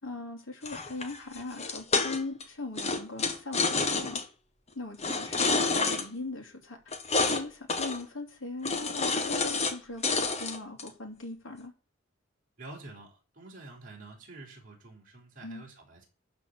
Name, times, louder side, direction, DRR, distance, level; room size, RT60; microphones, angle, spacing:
voice 1, 0.0-4.2 4.7-6.9 7.3-11.7 15.4-15.6, left 3 dB, 85° left, 3.1 m, -40 dB
sound 1, 0.7-2.4 2.8-4.2 5.0-6.1 6.9-7.4 7.7-8.0 8.6-9.8 10.0-10.9, left 4 dB, 35° left, 1.4 m, -28 dB
voice 2, 12.6-16.1, right 2 dB, 45° right, 4.5 m, -48 dB
12.0 x 4.4 x 8.1 m
head